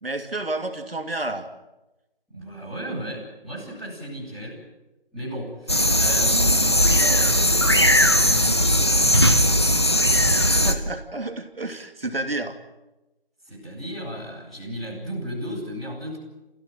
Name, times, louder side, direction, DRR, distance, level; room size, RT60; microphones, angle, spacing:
voice 1, 0.0-1.5 10.4-12.6, right 2 dB, 75° right, 6 dB, 3.0 m, -30 dB
voice 2, 2.3-4.6 5.1-9.1 13.4-16.2, equal, ahead, -19 dB, 3.4 m, -34 dB
sound 1, 5.7-10.7, left 1 dB, 25° left, 1.1 m, -18 dB
30.0 x 16.0 x 9.2 m, 1.0 s
figure-of-eight pair, 180°, 30 cm